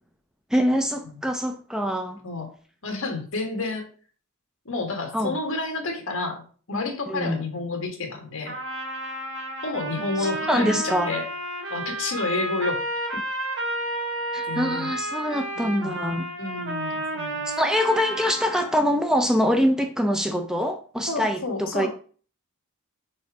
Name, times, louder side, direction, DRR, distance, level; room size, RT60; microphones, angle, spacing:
voice 1, 0.5-2.2 5.1-5.3 7.1-7.4 10.2-11.1 14.3-16.3 17.5-21.9, equal, 5° right, 0.4 m, -24 dB
voice 2, 2.8-3.9 4.6-6.4 6.7-8.5 9.6-11.2 11.7-12.8 13.1-13.2 14.5-14.9 15.5-16.0 16.4-17.5 21.1-21.9, left 3 dB, 65° left, 1.6 m, -30 dB
Trumpet, 8.4-18.9, right 1 dB, 55° right, 1.8 m, -31 dB
5.0 x 4.3 x 4.7 m
head